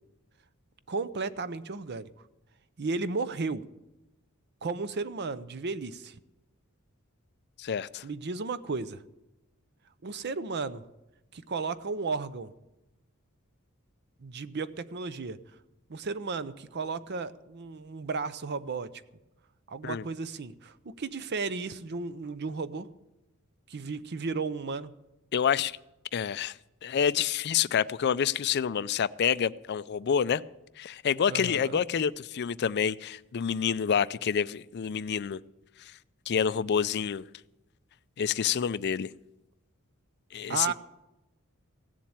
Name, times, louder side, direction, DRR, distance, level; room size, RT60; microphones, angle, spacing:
voice 1, 0.9-2.1 2.8-3.6 4.6-6.2 8.0-9.0 10.0-10.8 11.3-12.5 14.2-15.4 15.9-18.9 19.7-22.9 23.7-24.9 31.3-31.8 40.5-40.7, right 4 dB, 50° right, 0.6 m, -34 dB
voice 2, 7.6-8.0 19.8-20.0 25.3-25.8 26.1-26.5 26.8-30.4 30.8-35.4 36.3-37.3 38.2-39.1 40.3-40.7, left 7 dB, 50° left, 0.4 m, -28 dB
16.5 x 7.4 x 8.7 m
head